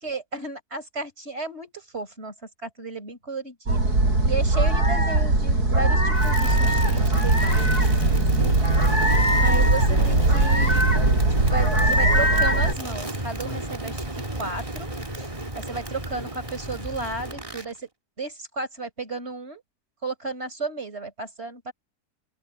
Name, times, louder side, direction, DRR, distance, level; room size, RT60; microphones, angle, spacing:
voice 1, 0.0-2.3 2.6-3.8 4.2-7.8 8.1-8.5 9.4-10.9 11.3-14.0 14.4-15.3 15.5-17.9 18.2-19.6 20.0-21.7, right 3 dB, 40° right, 4.9 m, -33 dB
sound 1, 3.7-12.7, right 2 dB, 75° right, 6.6 m, -20 dB
Crackle, 6.1-17.7, right 1 dB, 20° right, 2.7 m, -32 dB
open air
omnidirectional pair, 1.7 m